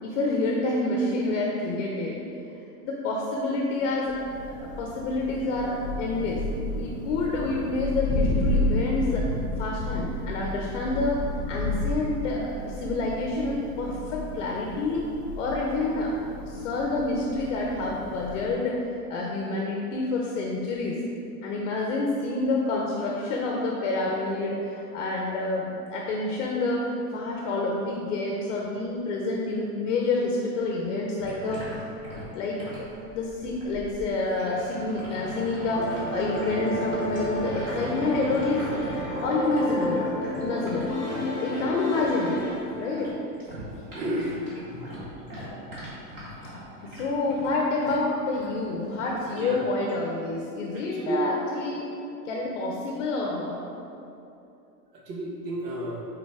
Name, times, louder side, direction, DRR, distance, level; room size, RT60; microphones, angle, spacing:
voice 1, 0.0-2.3 2.8-4.2 4.6-6.4 6.7-9.3 9.6-15.1 15.4-16.1 16.4-18.8 19.1-21.0 21.4-31.6 32.3-32.9 33.1-38.7 39.2-40.1 40.4-40.9 41.4-42.4 42.7-43.2 44.7-44.9 46.8-51.8 52.2-53.6, left 2 dB, 50° left, -1 dB, 0.7 m, -28 dB
Thunder, 4.1-18.6, left 1 dB, 25° left, 1.2 m, -32 dB
sound 1, 31.2-43.1 43.4-48.5 48.9-49.2 49.8-50.0, equal, 30° right, 1.5 m, -40 dB
sound 2, 35.7-42.6, left 1 dB, 10° right, 0.5 m, -32 dB
voice 2, 43.5-44.4 49.3-49.6 50.7-51.2 55.1-56.1, right 1 dB, 75° right, -2 dB, 1.2 m, -32 dB
5.5 x 4.0 x 4.7 m, 2.7 s
supercardioid pair, 170°, 48 cm